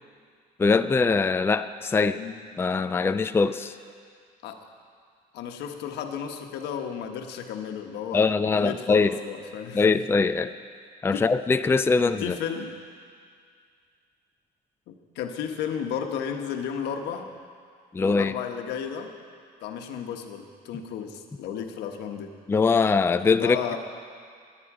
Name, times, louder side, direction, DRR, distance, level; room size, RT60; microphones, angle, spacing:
voice 1, 0.6-2.2 2.6-3.7 8.1-9.1 9.7-10.5 11.0-12.3 17.9-18.3 22.5-23.6, left 4 dB, 15° left, 10 dB, 0.4 m, -22 dB
voice 2, 5.3-10.0 11.1-11.3 12.2-12.7 14.9-17.3 18.0-19.1 19.6-22.3 23.3-23.8, left 8 dB, 85° left, 4 dB, 1.3 m, -33 dB
21.5 x 9.6 x 4.9 m, 2.1 s
cardioid pair, 110°, 17 cm